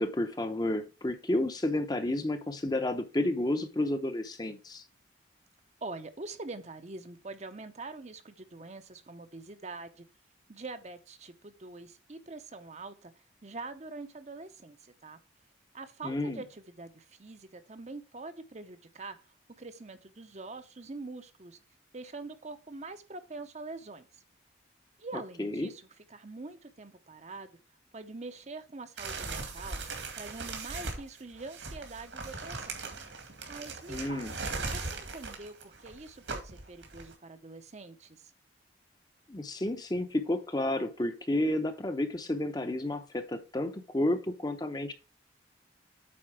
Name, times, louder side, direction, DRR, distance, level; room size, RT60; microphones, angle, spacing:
voice 1, 0.0-4.8 16.0-16.4 25.1-25.7 33.9-34.4 39.3-44.9, left 1 dB, 20° left, 8 dB, 0.7 m, -31 dB
voice 2, 5.8-10.0 10.5-13.1 13.4-14.8 15.0-15.2 15.7-19.2 19.6-21.6 21.9-24.1 25.0-27.5 27.9-29.8 30.2-32.8 33.5-34.3 34.7-38.2, right 3 dB, 35° right, 9 dB, 0.7 m, -44 dB
sound 1, 29.0-37.1, right 3 dB, 75° right, 2.2 m, -39 dB
8.7 x 4.2 x 4.8 m, 0.33 s
head